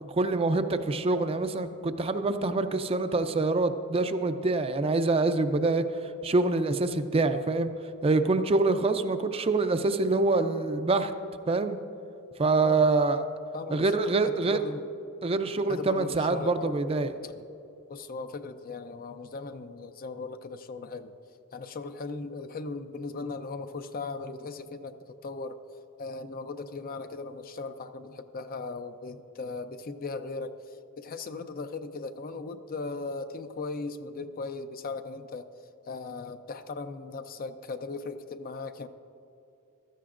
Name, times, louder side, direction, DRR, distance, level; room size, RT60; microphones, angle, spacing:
voice 1, 0.0-5.8 6.2-7.7 8.0-11.1 11.5-11.8 12.4-13.2 13.7-14.6 15.2-17.1, right 3 dB, 25° right, 9 dB, 0.4 m, -25 dB
voice 2, 12.6-14.8 15.7-16.8 17.2-17.3 17.9-21.1 21.5-25.6 26.0-30.5 31.0-35.5 35.9-38.9, left 3 dB, 40° left, 9 dB, 0.5 m, -38 dB
15.5 x 13.0 x 2.5 m, 2.8 s
head